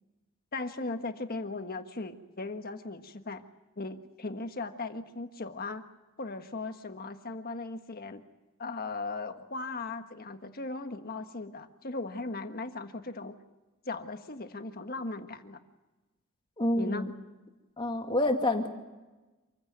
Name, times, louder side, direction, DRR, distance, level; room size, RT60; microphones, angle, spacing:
voice 1, 0.5-3.4 3.8-5.9 6.2-8.2 8.6-13.4 13.9-15.6 16.8-17.1, left 3 dB, 45° left, 7 dB, 1.5 m, -38 dB
voice 2, 16.6-17.1 17.8-18.7, left 1 dB, 25° left, 4 dB, 2.3 m, -28 dB
27.0 x 15.5 x 9.2 m, 1.1 s
head